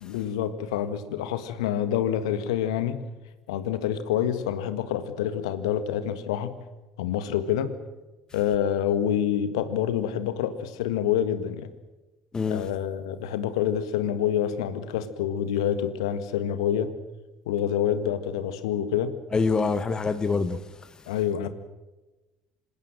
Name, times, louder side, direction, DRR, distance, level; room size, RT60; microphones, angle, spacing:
voice 1, 0.0-3.0 3.5-6.6 7.0-7.7 8.3-11.7 12.5-16.9 17.5-19.2 21.1-21.5, left 9 dB, 65° left, 1.8 m, -27 dB
voice 2, 12.3-12.7 19.3-20.6, left 4 dB, 25° left, 1.3 m, -25 dB
27.0 x 16.5 x 7.7 m
figure-of-eight pair, 60°, 3 cm